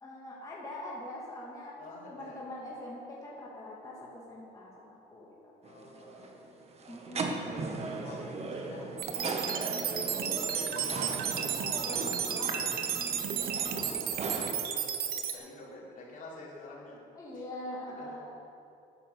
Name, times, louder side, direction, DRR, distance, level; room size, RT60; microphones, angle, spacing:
voice 1, 0.0-5.6 6.9-7.5 10.2-11.2 11.5-12.7 15.4-15.7 17.1-18.3, left 1 dB, 20° left, -5 dB, 2.1 m, -43 dB
voice 2, 1.8-2.4 5.6-6.6 7.1-9.7 13.9-15.0 15.3-17.0 17.9-18.2, left 2 dB, 55° left, -4 dB, 3.7 m, -49 dB
sound 1, 5.6-14.5, right 3 dB, 40° right, 1.4 m, -38 dB
sound 2, 9.0-15.3, right 8 dB, 65° right, 1.2 m, -33 dB
11.5 x 9.2 x 6.9 m, 2.8 s
cardioid pair, 110°, 17 cm